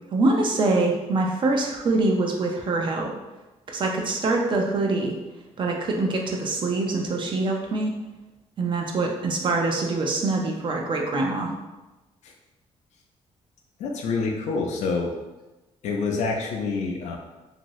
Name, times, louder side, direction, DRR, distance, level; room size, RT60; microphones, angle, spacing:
voice 1, 0.1-3.1 3.7-5.2 5.6-7.9 8.6-11.5, right 2 dB, 40° right, 1 dB, 0.5 m, -24 dB
voice 2, 13.8-15.1 15.8-17.2, left 4 dB, 75° left, 1 dB, 0.5 m, -27 dB
2.7 x 2.6 x 3.0 m, 1.1 s
cardioid pair, 135°, 12 cm